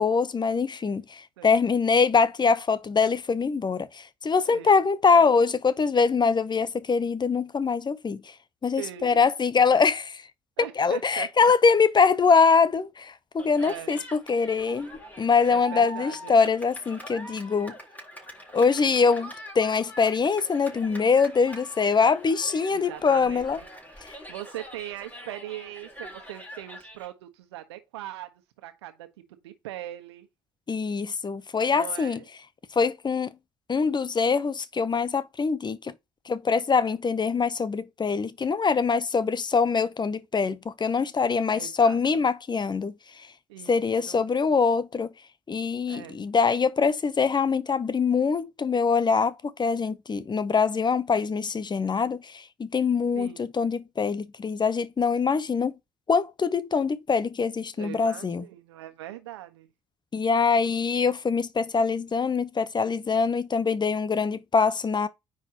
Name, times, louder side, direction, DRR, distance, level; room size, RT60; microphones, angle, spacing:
voice 1, 0.0-8.3 8.6-10.0 10.8-17.8 18.5-23.6 24.0-24.2 30.7-32.2 32.8-33.3 33.7-35.9 36.3-42.9 43.7-45.1 45.5-49.3 49.6-55.7 56.1-58.4 60.1-65.1, left 5 dB, 30° left, 0.9 m, -23 dB
voice 2, 4.4-4.8 5.1-5.3 8.8-9.3 9.6-9.8 10.6-11.5 13.6-14.0 15.4-16.4 22.7-28.3 28.6-29.1 29.4-30.3 31.7-32.3 41.5-42.2 43.5-43.8 44.1-44.2 45.9-46.3 53.1-53.5 57.8-59.7, right 14 dB, 80° right, 1.3 m, -41 dB
Cheering, 13.4-27.0, equal, 10° left, 4.0 m, -44 dB
9.6 x 4.6 x 3.0 m
hypercardioid pair, 50°, 14 cm